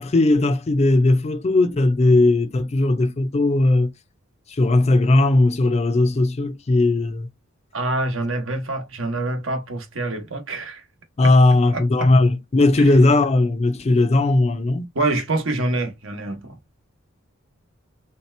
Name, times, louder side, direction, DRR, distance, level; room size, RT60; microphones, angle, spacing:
voice 1, 0.0-3.9 4.5-7.3 11.2-14.9, left 2 dB, 30° left, 0.4 m, -18 dB
voice 2, 7.7-10.8 11.2-11.3 11.7-12.1 14.9-16.6, right 2 dB, 70° right, 0.9 m, -26 dB
3.2 x 2.9 x 3.2 m
head